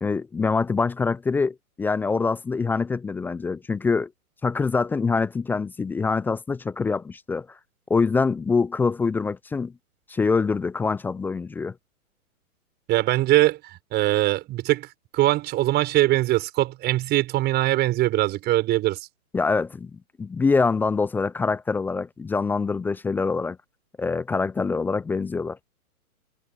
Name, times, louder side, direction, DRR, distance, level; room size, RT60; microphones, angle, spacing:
voice 1, 0.0-4.1 4.4-7.6 7.9-9.7 10.1-11.7 19.3-23.6 24.0-25.6, left 4 dB, 5° left, 0.7 m, -25 dB
voice 2, 12.9-14.9 15.1-19.0, right 16 dB, 20° right, 5.8 m, -22 dB
figure-of-eight pair, 130°, 44 cm